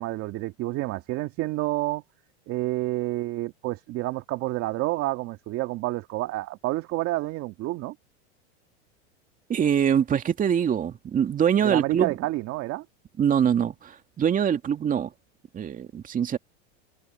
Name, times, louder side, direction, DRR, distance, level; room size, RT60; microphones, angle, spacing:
voice 1, 0.0-2.0 2.5-8.0 11.6-12.9, right 18 dB, 45° right, 2.0 m, -29 dB
voice 2, 9.5-12.1 13.2-15.1 15.5-16.4, right 8 dB, 25° right, 2.3 m, -24 dB
supercardioid pair, 120°, 34 cm